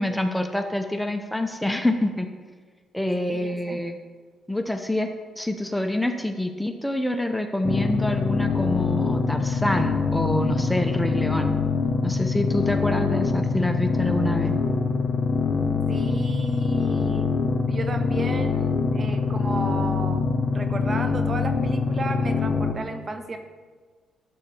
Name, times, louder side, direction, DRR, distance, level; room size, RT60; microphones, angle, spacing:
voice 1, 0.0-2.3 2.9-4.0 4.5-5.1 5.4-11.6 12.0-14.5, left 1 dB, 5° left, 6 dB, 0.7 m, -26 dB
voice 2, 3.2-3.8 15.9-17.3 17.7-23.4, right 3 dB, 35° right, 7 dB, 0.9 m, -33 dB
sound 1, 7.6-22.7, left 4 dB, 35° left, 1.1 m, -24 dB
11.5 x 4.1 x 6.9 m, 1.5 s
cardioid pair, 90°, 0 cm